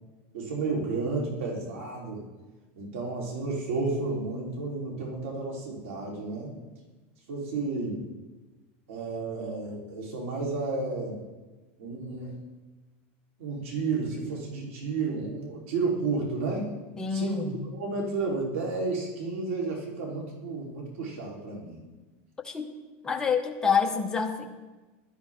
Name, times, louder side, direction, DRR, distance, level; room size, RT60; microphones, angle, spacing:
voice 1, 0.3-2.2 2.8-6.5 7.3-8.0 8.9-11.2 11.8-12.4 13.4-16.7 17.1-21.8, right 3 dB, 90° right, -2 dB, 3.7 m, -32 dB
voice 2, 17.0-17.6 22.4-22.7 23.0-24.5, left 6 dB, 10° left, 2 dB, 0.9 m, -27 dB
15.5 x 11.5 x 3.6 m, 1.2 s
supercardioid pair, 170°, 7 cm